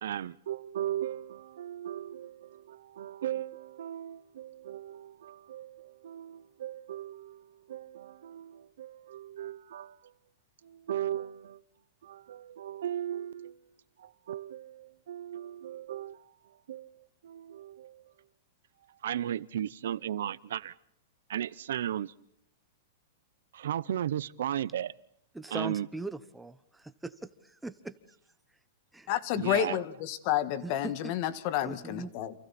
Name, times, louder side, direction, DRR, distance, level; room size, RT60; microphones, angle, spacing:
voice 1, 0.0-10.1 10.6-11.6 12.0-13.6 14.0-16.2 16.7-18.0 19.0-20.7 21.3-22.1 23.5-24.9 25.5-25.9 29.3-29.8, right 11 dB, 80° right, 20 dB, 0.8 m, -36 dB
voice 2, 25.3-27.9 28.9-29.1 30.6-31.1 31.6-32.1, right 2 dB, 5° right, 12 dB, 1.1 m, -40 dB
voice 3, 29.1-32.3, left 11 dB, 45° left, 13 dB, 1.8 m, -30 dB
29.5 x 28.0 x 4.3 m, 0.74 s
supercardioid pair, 150°, 0 cm